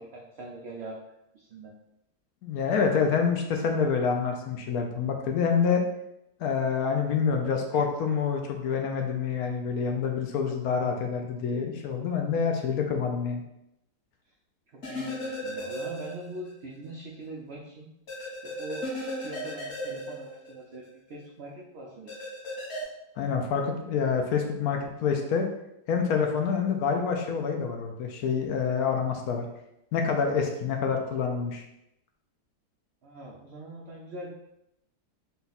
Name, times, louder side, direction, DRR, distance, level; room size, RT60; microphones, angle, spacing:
voice 1, 0.0-1.7 14.7-17.9 18.2-18.9 19.2-22.1 33.0-34.3, right 2 dB, 80° right, -1 dB, 0.5 m, -42 dB
voice 2, 2.4-5.8 6.4-13.4 23.2-25.4 25.9-29.5 29.9-31.6, left 6 dB, 70° left, 3 dB, 1.0 m, -27 dB
sound 1, 14.8-16.5 16.8-16.9 18.1-20.9 22.1-22.8, equal, 45° left, 1.2 m, -35 dB
4.0 x 2.3 x 4.0 m, 0.83 s
omnidirectional pair, 1.7 m